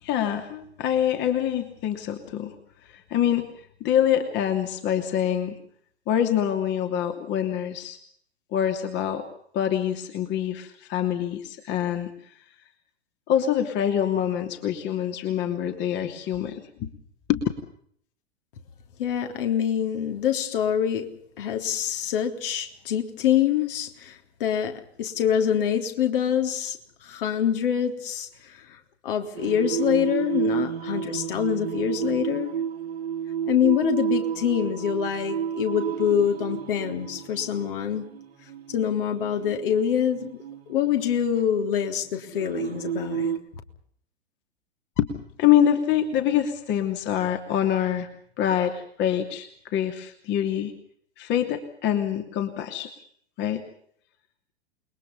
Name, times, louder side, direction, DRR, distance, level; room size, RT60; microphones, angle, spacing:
voice 1, 0.0-2.5 2.8-3.5 3.8-5.6 6.1-8.0 8.5-9.2 9.5-12.1 13.3-16.9 17.3-17.4 45.0-45.1 45.4-48.1 48.4-50.7 51.2-52.9 53.4-53.7, left 10 dB, 35° left, 2.8 m, -25 dB
voice 2, 19.0-21.1 21.4-32.5 33.4-38.1 38.7-40.4 40.7-43.3, left 9 dB, 55° left, 3.5 m, -25 dB
Singing, 29.4-43.4, right 8 dB, 60° right, 2.5 m, -31 dB
29.0 x 22.0 x 5.4 m
figure-of-eight pair, 95°, 33 cm